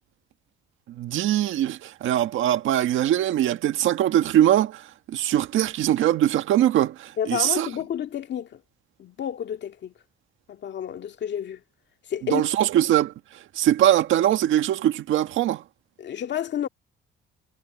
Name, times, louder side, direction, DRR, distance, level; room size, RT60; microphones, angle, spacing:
voice 1, 0.9-7.7 12.3-13.1 13.5-15.6, right 12 dB, 80° right, 1.6 m, -22 dB
voice 2, 7.2-8.6 9.0-9.9 10.5-11.6 12.1-12.5 16.0-16.7, left 9 dB, 65° left, 2.0 m, -30 dB
cardioid pair, 90°, 20 cm